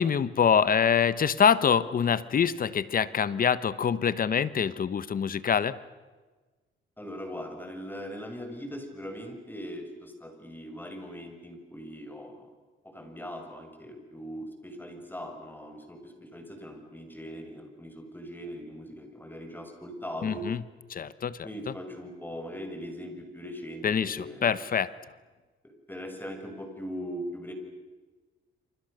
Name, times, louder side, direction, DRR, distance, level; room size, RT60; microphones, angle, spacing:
voice 1, 0.0-5.8 20.2-20.6 20.9-21.7 23.8-24.9, left 7 dB, 45° left, 16 dB, 1.2 m, -25 dB
voice 2, 7.0-12.4 12.8-20.4 21.4-24.5 25.6-27.5, equal, 10° left, 5 dB, 6.5 m, -40 dB
27.5 x 27.5 x 6.8 m, 1.3 s
cardioid pair, 90°, 20 cm